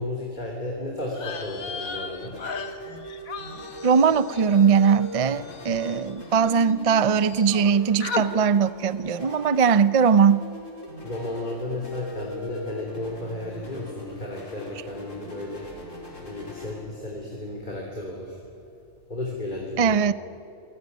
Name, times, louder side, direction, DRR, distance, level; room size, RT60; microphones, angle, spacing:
voice 1, 0.0-2.4 11.0-15.9 16.2-18.4 19.1-20.0, left 1 dB, 35° left, -1 dB, 3.5 m, -33 dB
sound 1, 1.1-6.7 7.0-7.7 8.0-8.3, left 5 dB, 85° left, 1.9 m, -37 dB
sound 2, 1.3-19.5, left 1 dB, 65° left, 5.1 m, -41 dB
voice 2, 3.8-10.4 19.8-20.1, right 6 dB, 40° right, 15 dB, 0.5 m, -20 dB
27.0 x 19.5 x 9.6 m, 2.6 s
omnidirectional pair, 1.4 m